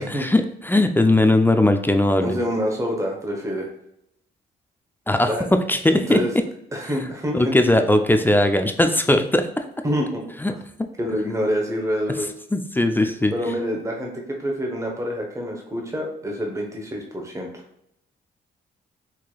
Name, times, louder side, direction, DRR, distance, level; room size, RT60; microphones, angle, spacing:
voice 1, 0.0-2.4 5.1-5.3 5.7-6.2 7.3-9.5 10.4-10.5 10.8-10.9 12.5-13.3, left 1 dB, 10° left, 7 dB, 0.3 m, -19 dB
voice 2, 2.2-3.7 5.2-5.4 5.9-6.3 6.7-7.8 9.8-10.2 11.0-12.3 13.3-17.6, equal, 15° right, 0 dB, 0.9 m, -26 dB
4.6 x 2.9 x 2.3 m, 0.75 s
cardioid pair, 85°, 21 cm